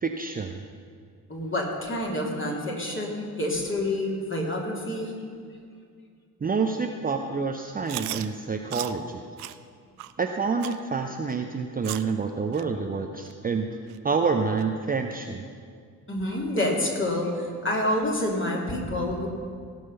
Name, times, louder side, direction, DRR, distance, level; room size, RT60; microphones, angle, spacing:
voice 1, 0.0-0.6 6.4-9.2 10.2-13.7 14.0-15.4, right 4 dB, 20° right, 4 dB, 0.7 m, -28 dB
voice 2, 1.3-5.1 16.1-19.3, left 1 dB, 25° left, -2 dB, 3.0 m, -28 dB
Chewing mastication, 7.9-8.3 8.7-8.9 9.4-9.5 10.0-10.1 10.6-10.8 11.3-11.4 11.8-12.1 12.5-12.6 13.2-13.3 13.9-14.0 14.6-14.7, right 16 dB, 75° right, 0.5 m, -35 dB
17.0 x 6.3 x 5.7 m, 2.2 s
figure-of-eight pair, 45°, 45 cm